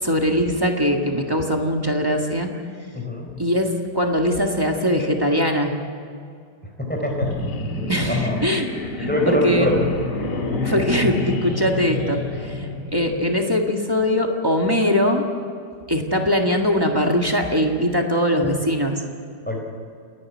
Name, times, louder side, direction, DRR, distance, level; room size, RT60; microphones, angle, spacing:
voice 1, 0.0-2.5 3.4-5.7 7.9-8.7 9.0-9.7 10.6-15.3 15.9-19.0, equal, 15° right, 1 dB, 1.7 m, -21 dB
voice 2, 2.9-3.3 6.8-7.3 7.8-8.4 9.1-9.9 19.5-19.6, left 1 dB, 5° left, 0 dB, 4.1 m, -24 dB
sound 1, 7.1-13.3, left 2 dB, 75° left, 2.6 m, -28 dB
29.5 x 11.0 x 9.7 m, 2.3 s
omnidirectional pair, 1.8 m